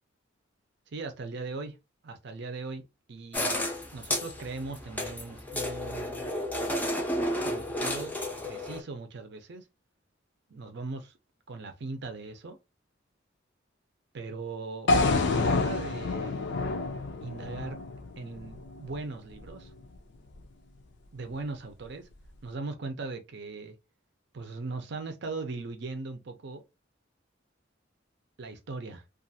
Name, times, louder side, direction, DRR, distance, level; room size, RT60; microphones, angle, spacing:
voice 1, 0.9-1.7 2.0-6.3 7.4-8.1 8.4-9.7 10.5-11.1 11.5-12.6 14.1-14.9 15.4-16.4 17.2-17.8 18.2-19.7 21.1-22.1 22.4-23.8 24.3-26.6 28.4-29.0, right 3 dB, 65° right, 0.6 m, -39 dB
sound 1, 3.3-8.8, left 1 dB, 10° left, 0.5 m, -32 dB
sound 2, 14.9-19.0, left 3 dB, 65° left, 0.4 m, -28 dB
2.4 x 2.4 x 2.6 m
head